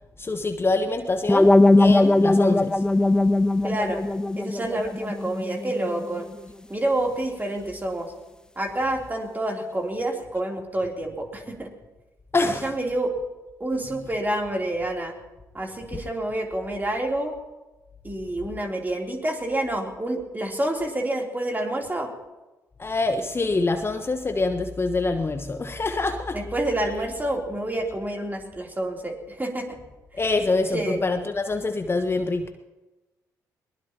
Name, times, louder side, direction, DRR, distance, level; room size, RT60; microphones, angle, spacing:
voice 1, 0.2-1.5 1.8-2.8 12.3-12.7 22.8-26.4 30.2-32.5, left 3 dB, 30° left, 7 dB, 1.1 m, -25 dB
sound 1, 1.3-6.2, left 2 dB, 10° left, 0.6 m, -20 dB
voice 2, 3.6-4.0 4.4-6.3 6.7-8.1 8.5-11.7 12.4-13.1 13.6-15.1 15.5-17.3 18.0-22.1 26.3-29.8 30.7-31.0, right 1 dB, 20° right, 1 dB, 3.3 m, -28 dB
22.0 x 20.0 x 3.0 m, 1.1 s
figure-of-eight pair, 40°, 9 cm